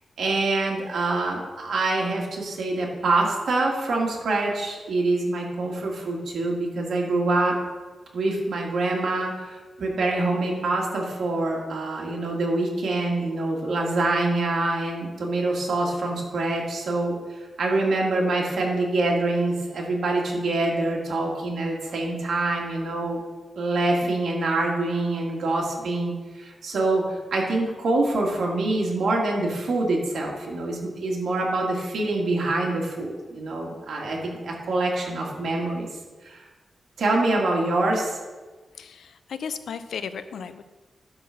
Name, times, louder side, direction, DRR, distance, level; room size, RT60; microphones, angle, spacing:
voice 1, 0.2-7.6 8.1-23.2 23.6-35.9 36.2-36.4 37.0-38.2, right 2 dB, 70° right, -1 dB, 2.1 m, -25 dB
voice 2, 38.8-40.6, left 6 dB, 90° left, 11 dB, 0.5 m, -35 dB
11.5 x 4.1 x 5.9 m, 1.3 s
wide cardioid pair, 125°, 0 cm